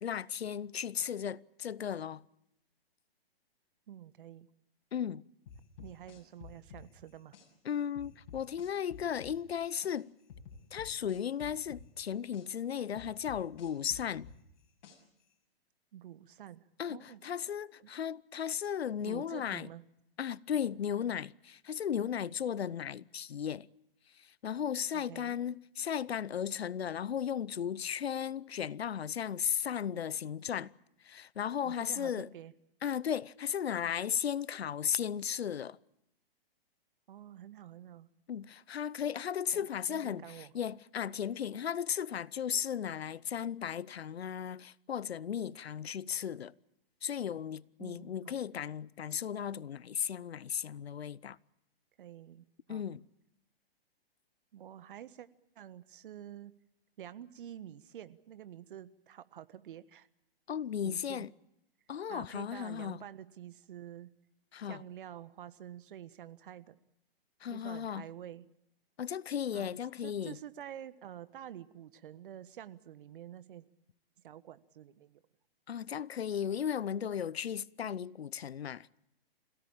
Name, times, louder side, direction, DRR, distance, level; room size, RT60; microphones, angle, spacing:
voice 1, 0.0-2.2 4.9-5.2 7.6-10.1 10.7-14.3 16.8-19.7 20.2-23.7 24.1-30.7 31.0-32.3 32.8-35.8 38.3-46.5 47.0-51.4 52.7-53.0 60.5-61.3 61.9-63.1 64.5-64.8 67.4-68.1 69.0-70.4 75.7-78.9, left 8 dB, 80° left, 0.8 m, -35 dB
voice 2, 3.9-4.5 5.8-7.3 15.9-17.2 19.0-19.8 22.6-22.7 24.9-25.4 31.6-32.5 37.1-38.1 39.5-40.5 47.8-48.4 52.0-52.8 54.5-55.3 55.5-56.6 57.0-60.1 60.8-61.3 62.1-64.1 64.7-66.8 67.5-68.5 69.5-69.7 70.0-73.7 74.2-75.2 77.8-77.9, right 11 dB, 55° right, 1.4 m, -48 dB
sound 1, 5.5-7.5 8.0-10.0 10.3-12.5 13.0-15.2, left 6 dB, 45° left, 6.8 m, -50 dB
26.5 x 17.0 x 8.8 m
hypercardioid pair, 135°, 31 cm